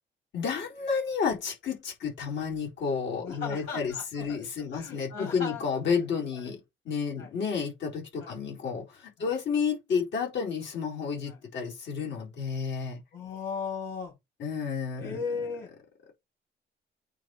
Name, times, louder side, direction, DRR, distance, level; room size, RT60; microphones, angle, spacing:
voice 1, 0.3-6.6 6.8-13.0 14.4-15.2, left 6 dB, 65° left, 4.2 m, -31 dB
voice 2, 3.2-4.4 4.7-5.6 5.9-6.0 6.3-6.6 7.2-7.3 8.2-8.4 9.2-9.3 11.3-11.4 13.1-14.1 15.0-15.7, left 5 dB, 85° left, 3.5 m, -37 dB
8.9 x 3.2 x 4.8 m
cardioid pair, 90°, 20 cm